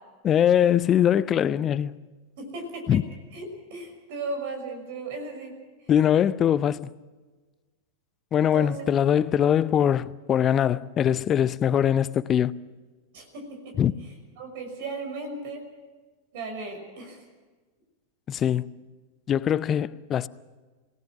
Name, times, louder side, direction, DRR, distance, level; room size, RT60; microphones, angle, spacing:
voice 1, 0.2-2.0 2.9-3.0 5.9-6.9 8.3-12.5 13.8-13.9 18.3-18.7 19.3-20.3, left 9 dB, 30° left, 0.7 m, -22 dB
voice 2, 2.4-3.0 3.3-5.5 8.5-8.7 13.1-13.7 14.4-15.6 16.3-17.2, right 3 dB, 50° right, 6.1 m, -36 dB
28.0 x 18.0 x 6.1 m
figure-of-eight pair, 90°, 0 cm